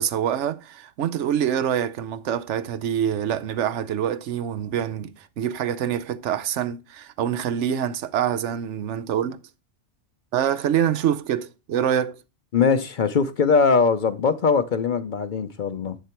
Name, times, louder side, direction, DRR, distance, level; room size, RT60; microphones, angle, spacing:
voice 1, 0.0-9.4 10.3-12.2, right 9 dB, 85° right, 1.0 m, -25 dB
voice 2, 12.5-16.0, left 5 dB, 50° left, 0.7 m, -21 dB
8.0 x 6.6 x 4.4 m
omnidirectional pair, 1.2 m